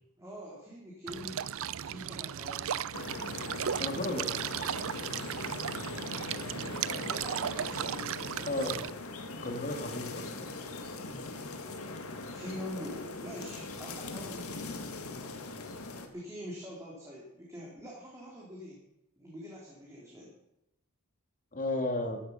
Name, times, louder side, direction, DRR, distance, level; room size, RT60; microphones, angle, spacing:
voice 1, 0.2-1.4 1.8-2.9 3.9-4.4 6.9-8.9 11.0-11.5 12.2-14.7 16.1-18.8 19.2-20.3, equal, 15° right, -5 dB, 3.6 m, -45 dB
sound 1, 1.1-8.9, right 9 dB, 65° right, 0.5 m, -36 dB
sound 2, 2.9-16.1, left 3 dB, 70° left, 1.9 m, -41 dB
voice 2, 3.8-4.3 8.5-8.9 9.4-10.5 21.5-22.2, left 2 dB, 40° left, 4 dB, 2.3 m, -33 dB
15.0 x 11.5 x 5.8 m, 0.86 s
head